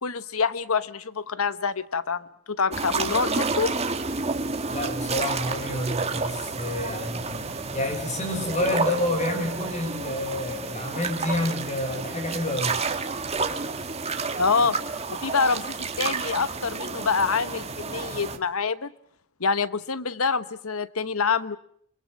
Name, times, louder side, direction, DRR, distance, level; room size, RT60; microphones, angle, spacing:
voice 1, 0.0-3.7 14.4-14.8 15.1-18.9 19.4-21.6, left 5 dB, 80° left, 15 dB, 1.1 m, -26 dB
sound 1, 2.7-18.4, right 4 dB, 30° right, 1.8 m, -30 dB
voice 2, 4.7-7.4 7.7-12.8 14.6-14.7, left 1 dB, 35° left, 6 dB, 6.0 m, -29 dB
26.0 x 23.0 x 7.4 m, 0.68 s
head